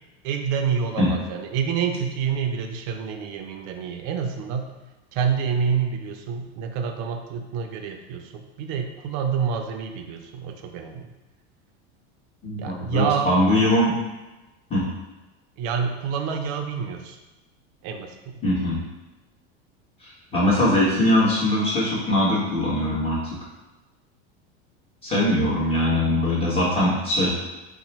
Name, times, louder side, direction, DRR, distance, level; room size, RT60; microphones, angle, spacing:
voice 1, 0.2-4.7 5.1-11.1 12.6-13.3 15.6-17.2 17.8-18.4, right 6 dB, 55° right, 5 dB, 0.5 m, -27 dB
voice 2, 12.4-13.9 14.7-14.8 18.4-18.8 20.0-23.2 25.0-27.3, left 1 dB, 20° left, -7 dB, 1.3 m, -21 dB
2.9 x 2.1 x 4.1 m, 1.1 s
supercardioid pair, 120°, 31 cm